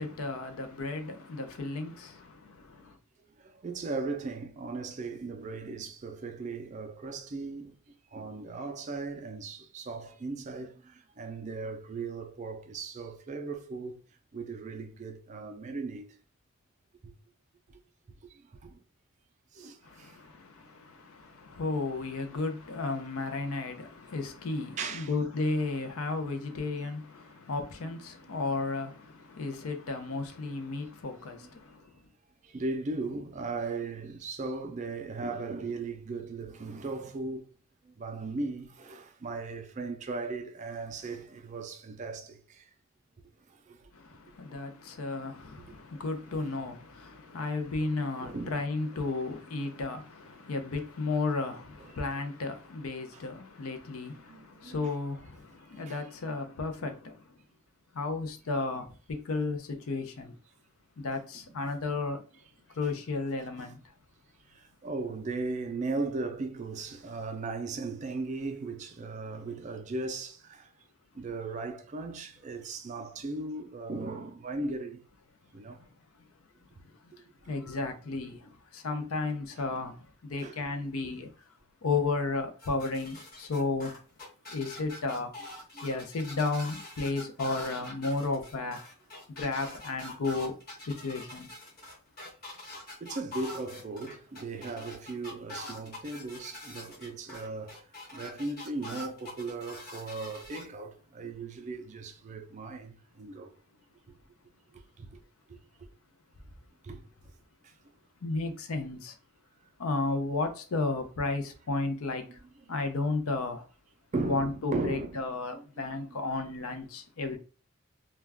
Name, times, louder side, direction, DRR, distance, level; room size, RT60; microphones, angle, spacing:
voice 1, 0.0-3.0 19.8-31.9 43.9-57.3 57.9-60.3 61.0-62.2 62.7-63.8 77.4-81.3 81.8-83.9 84.5-85.3 85.8-88.8 89.3-90.6 90.9-91.5 108.2-109.1 109.8-112.4 112.7-113.6 114.3-117.4, left 3 dB, 85° left, 0.5 m, -33 dB
voice 2, 3.4-7.8 8.1-14.0 14.3-16.1 17.0-17.1 18.6-18.8 19.5-20.2 24.8-25.1 27.8-28.0 31.3-31.5 32.4-37.5 37.9-42.6 43.7-43.9 48.2-48.6 51.9-52.0 53.1-53.2 54.3-54.9 55.9-56.0 56.8-56.9 62.8-62.9 64.5-70.7 71.1-75.0 75.5-75.8 80.4-80.6 85.7-85.9 93.0-97.8 98.1-103.5 105.0-105.2 106.8-107.0 114.1-115.1 115.5-115.9, right 3 dB, 35° right, 0.3 m, -37 dB
sound 1, 82.6-100.6, left 1 dB, 45° left, 1.0 m, -44 dB
2.2 x 2.2 x 3.4 m
head